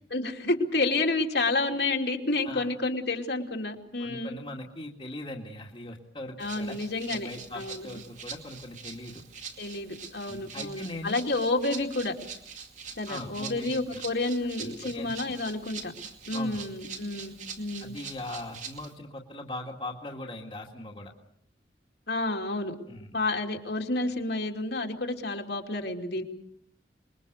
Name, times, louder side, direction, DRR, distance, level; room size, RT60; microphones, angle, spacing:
voice 1, 0.1-4.4 6.4-7.3 7.5-7.9 9.6-12.1 13.0-15.9 16.3-17.9 22.1-22.7 23.1-26.2, left 2 dB, 70° left, 2 dB, 2.9 m, -30 dB
voice 2, 4.0-6.8 7.1-9.2 10.3-11.1 13.1-14.0 14.6-15.1 16.3-16.7 17.8-21.1 22.9-23.2, left 1 dB, 30° left, 1 dB, 2.1 m, -40 dB
Rattle (instrument), 6.4-18.9, right 6 dB, 40° right, 2.5 m, -44 dB
27.0 x 22.5 x 6.7 m, 0.70 s
head